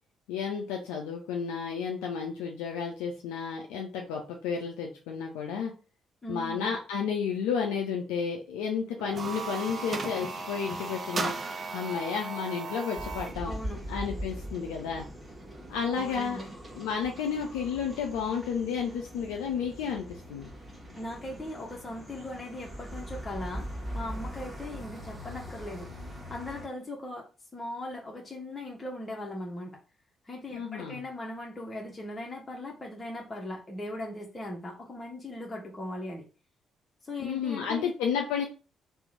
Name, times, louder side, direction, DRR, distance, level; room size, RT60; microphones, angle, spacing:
voice 1, 0.3-5.7 6.3-11.3 11.7-13.5 13.9-15.0 15.7-16.4 16.8-20.5 30.5-31.0 37.2-38.4, left 6 dB, 70° left, 1 dB, 0.4 m, -32 dB
voice 2, 6.2-6.6 13.4-13.8 15.9-16.5 21.0-23.7 23.9-25.9 26.3-27.3 27.5-29.8 30.2-36.3 37.0-37.9, left 1 dB, 25° left, -1 dB, 0.7 m, -39 dB
sound 1, 9.0-13.4, right 3 dB, 45° right, 0.4 m, -36 dB
sound 2, 13.0-26.7, equal, 25° right, 1.3 m, -41 dB
2.9 x 2.0 x 3.8 m, 0.34 s
figure-of-eight pair, 40°, 0 cm